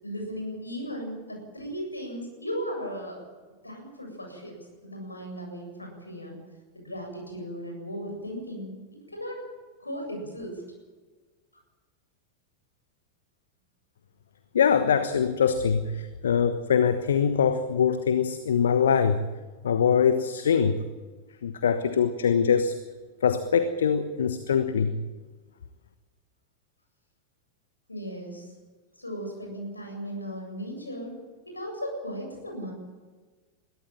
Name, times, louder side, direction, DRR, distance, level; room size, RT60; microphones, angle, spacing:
voice 1, 0.0-3.2 3.6-6.4 6.7-8.8 9.1-9.4 9.8-10.6 27.9-28.5 29.0-31.1 31.4-32.7, equal, 85° left, 2 dB, 7.8 m, -36 dB
voice 2, 14.5-19.2 19.6-20.8 21.4-22.7 23.2-24.9, left 7 dB, 65° left, 10 dB, 1.2 m, -23 dB
22.5 x 16.5 x 9.0 m, 1.4 s
figure-of-eight pair, 90°, 0 cm